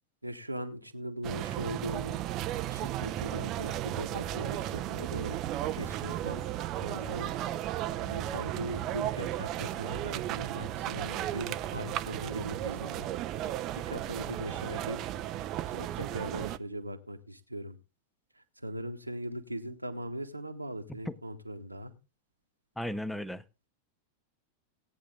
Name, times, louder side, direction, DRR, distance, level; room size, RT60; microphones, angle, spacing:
voice 1, 0.2-2.2 2.7-5.4 5.7-6.4 6.8-7.3 7.9-13.1 13.7-15.0 15.7-17.8 18.4-21.9, right 1 dB, 85° right, 1.5 m, -40 dB
sound 1, 1.2-16.6, right 13 dB, 35° right, 0.7 m, -35 dB
voice 2, 22.8-23.7, left 1 dB, 5° left, 0.8 m, -36 dB
17.5 x 9.4 x 3.7 m
figure-of-eight pair, 90°, 0 cm